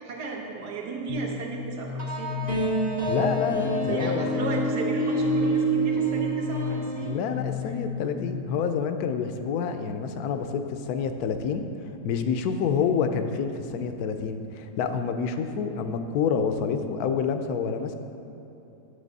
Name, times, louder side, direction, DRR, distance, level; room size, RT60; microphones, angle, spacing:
voice 1, 0.0-2.6 3.9-7.2, right 4 dB, 75° right, -1 dB, 1.7 m, -34 dB
sound 1, 1.1-8.6, left 8 dB, 35° left, 0.6 m, -35 dB
sound 2, 2.0-7.2, right 2 dB, 30° right, 0.9 m, -27 dB
voice 2, 3.1-4.2 7.0-11.6 12.0-18.0, left 6 dB, 70° left, 8 dB, 1.0 m, -28 dB
9.7 x 6.8 x 4.0 m, 3.0 s
omnidirectional pair, 1.8 m